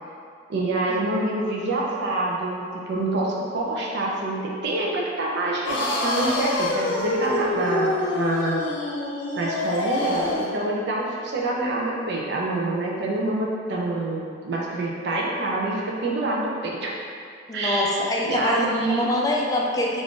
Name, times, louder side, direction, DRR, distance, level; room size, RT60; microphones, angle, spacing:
voice 1, 0.5-8.6 9.3-17.0 17.5-17.9 18.3-19.1, right 2 dB, 65° right, -3 dB, 0.4 m, -26 dB
sound 1, 5.6-10.6, left 2 dB, 80° left, 0.5 m, -26 dB
voice 2, 17.5-18.7 19.0-20.0, left 1 dB, 20° left, -3 dB, 0.3 m, -24 dB
2.5 x 2.4 x 3.6 m, 2.3 s
head